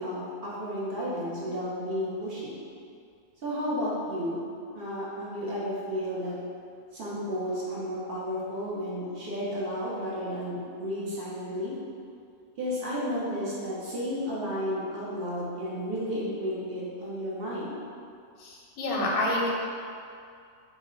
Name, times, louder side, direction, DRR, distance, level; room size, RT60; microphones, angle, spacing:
voice 1, 0.0-2.6 3.4-4.5 4.7-6.4 6.9-11.7 12.6-17.7, equal, 55° right, -8 dB, 0.7 m, -32 dB
voice 2, 18.4-19.5, left 1 dB, 90° left, -3 dB, 1.1 m, -28 dB
3.0 x 2.0 x 3.7 m, 2.3 s
omnidirectional pair, 1.5 m